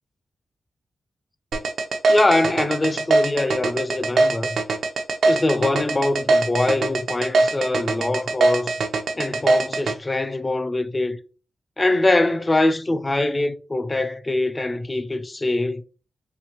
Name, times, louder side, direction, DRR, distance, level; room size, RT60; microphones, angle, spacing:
sound 1, 1.5-9.9, right 3 dB, 80° right, 0.5 m, -21 dB
voice 1, 2.1-4.6 5.2-8.7 9.2-11.2 11.8-15.8, left 2 dB, 25° left, 0.4 m, -23 dB
5.4 x 2.5 x 2.9 m
wide cardioid pair, 115°, 0 cm